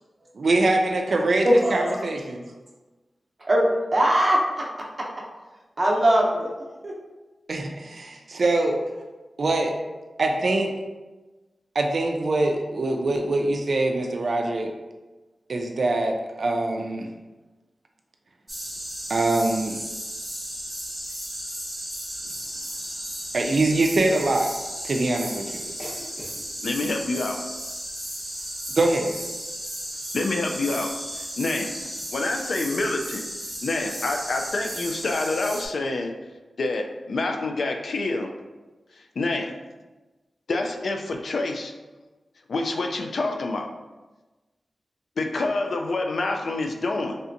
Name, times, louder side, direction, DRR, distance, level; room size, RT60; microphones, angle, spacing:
voice 1, 0.4-2.4 7.5-8.8 9.4-9.7 10.2-10.7 11.7-14.7 15.5-17.1 19.1-19.8 23.3-24.5 24.8-25.6 28.8-29.2, right 2 dB, 65° right, 3 dB, 0.3 m, -23 dB
voice 2, 1.4-2.0 3.4-4.9 5.8-6.5 6.8-6.9, equal, 35° right, -3 dB, 0.7 m, -21 dB
sound 1, 18.5-35.7, equal, 5° right, 0.8 m, -34 dB
voice 3, 26.6-27.4 30.1-30.9 31.2-31.7 32.1-33.2 33.6-36.1 36.6-38.3 39.0-39.5 40.5-41.7 42.5-43.7 45.2-47.2, left 2 dB, 75° left, 3 dB, 0.3 m, -27 dB
3.2 x 2.7 x 2.5 m, 1.2 s
wide cardioid pair, 85°, 0 cm